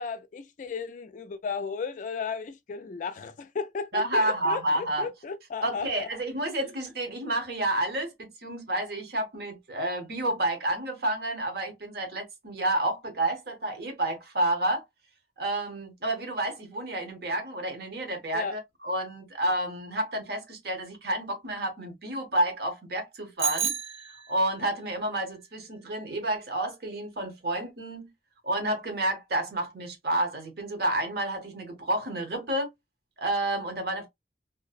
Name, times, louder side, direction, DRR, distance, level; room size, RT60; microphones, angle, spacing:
voice 1, 0.0-6.1 6.6-6.7 18.3-18.6, left 5 dB, 45° left, 0.3 m, -35 dB
voice 2, 3.9-5.1 5.6-14.8 15.4-23.8 24.3-28.1 28.4-32.7 33.2-34.1, right 1 dB, 60° right, 0.8 m, -30 dB
Bicycle bell, 23.4-24.7, right 8 dB, 35° right, 0.4 m, -31 dB
2.5 x 2.0 x 2.4 m
head